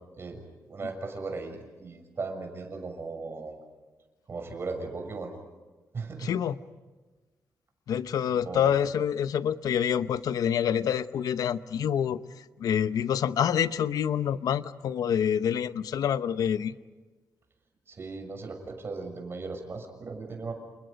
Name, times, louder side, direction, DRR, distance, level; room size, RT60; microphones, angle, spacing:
voice 1, 0.7-3.6 4.3-5.3 5.9-6.3 8.4-8.7 17.9-20.5, right 4 dB, 40° right, 5 dB, 6.7 m, -37 dB
voice 2, 6.2-6.6 7.9-16.7, left 9 dB, 85° left, 13 dB, 0.8 m, -27 dB
30.0 x 29.5 x 5.2 m, 1.3 s
wide cardioid pair, 130°, 6 cm